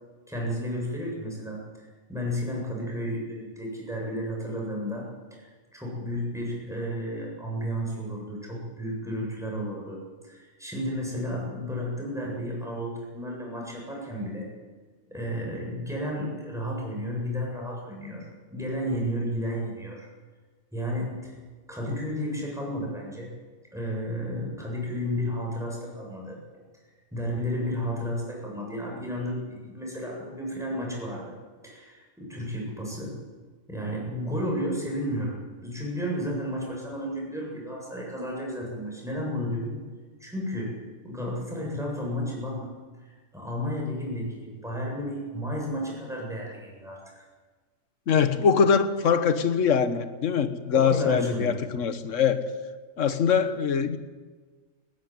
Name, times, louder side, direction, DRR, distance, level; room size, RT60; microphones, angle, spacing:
voice 1, 0.3-14.5 15.1-20.1 20.7-21.3 21.7-23.3 23.7-26.4 27.1-31.4 31.6-33.2 33.7-39.8 40.2-42.7 43.0-47.2 50.7-51.6, equal, ahead, -3 dB, 8.0 m, -32 dB
voice 2, 48.1-52.4 53.0-54.0, left 6 dB, 65° left, 11 dB, 1.6 m, -23 dB
19.0 x 18.0 x 9.4 m, 1.4 s
omnidirectional pair, 1.4 m